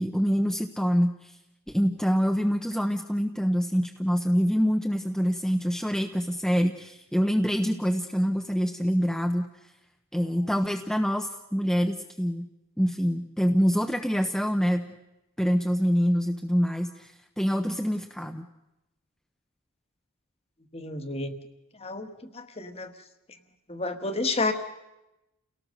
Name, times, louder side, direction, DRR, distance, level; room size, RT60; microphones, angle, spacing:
voice 1, 0.0-1.3 1.7-9.5 10.1-12.5 12.8-14.9 15.4-17.1 17.4-18.5, equal, ahead, 5 dB, 0.8 m, -25 dB
voice 2, 20.7-21.3 21.8-22.9 23.7-24.5, left 3 dB, 25° left, 9 dB, 1.5 m, -30 dB
29.5 x 18.0 x 6.5 m, 0.96 s
head